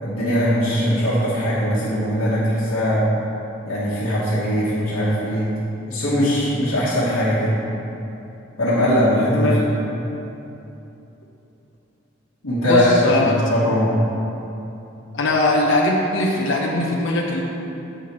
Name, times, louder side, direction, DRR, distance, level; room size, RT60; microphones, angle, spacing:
voice 1, 0.0-3.1 3.6-5.5 5.9-7.6 8.6-9.5 12.4-13.9, equal, 80° left, -9 dB, 1.4 m, -20 dB
voice 2, 12.6-13.4 15.1-17.4, left 2 dB, 60° left, -2 dB, 0.7 m, -20 dB
7.9 x 5.6 x 4.3 m, 2.9 s
head